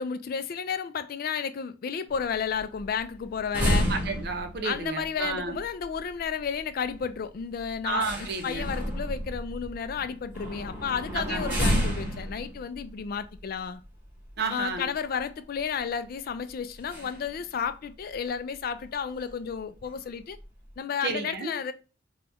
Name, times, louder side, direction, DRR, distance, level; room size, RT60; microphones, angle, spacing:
voice 1, 0.0-3.9 4.6-8.1 8.4-13.8 14.5-20.4 20.8-21.7, left 6 dB, 50° left, 0.3 m, -32 dB
Distant Steel Door Open Close Shut Creak Ambience, 2.1-14.7 15.2-15.3 15.5-15.8 16.8-17.4 17.6-17.7 18.1-18.2 18.8-18.9 19.2-19.5 19.8-20.6, equal, 10° right, 1.8 m, -31 dB
voice 2, 3.9-5.6 7.8-8.7 11.1-11.6 14.4-14.9 21.0-21.5, right 4 dB, 55° right, 0.6 m, -32 dB
4.0 x 2.3 x 3.4 m
head